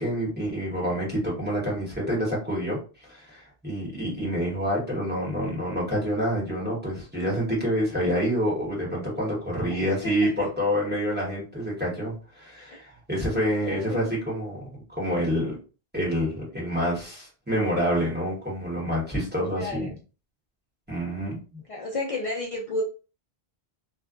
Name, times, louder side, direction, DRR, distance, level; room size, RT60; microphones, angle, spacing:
voice 1, 0.0-2.8 3.1-15.6 15.9-19.9 20.9-21.4, equal, 10° right, -6 dB, 1.0 m, -27 dB
voice 2, 9.7-10.5 12.7-12.8 13.6-14.1 19.5-19.9 21.7-22.8, left 2 dB, 65° left, -2 dB, 0.3 m, -32 dB
2.4 x 2.2 x 2.4 m, 0.34 s
omnidirectional pair, 1.1 m